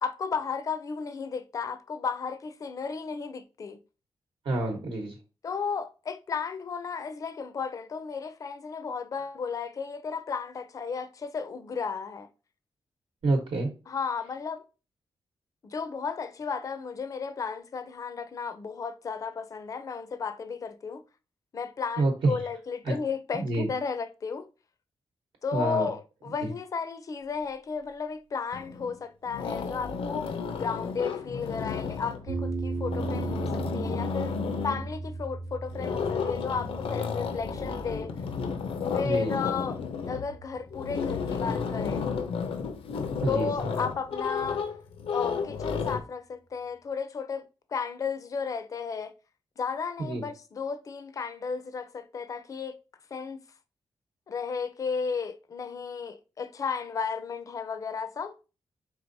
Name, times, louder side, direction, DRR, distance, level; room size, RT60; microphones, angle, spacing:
voice 1, 0.0-3.8 5.4-12.3 13.9-14.6 15.6-21.0 21.5-24.5 25.4-30.3 30.5-34.3 34.6-38.1 38.9-39.8 40.1-42.0 43.3-44.6 45.1-49.1 49.6-52.8 53.1-53.4 54.3-58.3, left 5 dB, 35° left, 0.4 m, -34 dB
voice 2, 4.5-5.1 13.2-13.7 22.0-22.3 23.3-23.7 25.5-25.9 39.0-39.3 43.2-43.5 50.0-50.2, right 2 dB, 70° right, 1.0 m, -27 dB
sound 1, 28.5-29.0 29.3-32.3 32.7-34.9 35.7-46.0, left 6 dB, 90° left, 0.5 m, -32 dB
sound 2, 32.3-42.5, right 3 dB, 50° right, 0.5 m, -38 dB
4.5 x 3.6 x 2.6 m
wide cardioid pair, 165°, 9 cm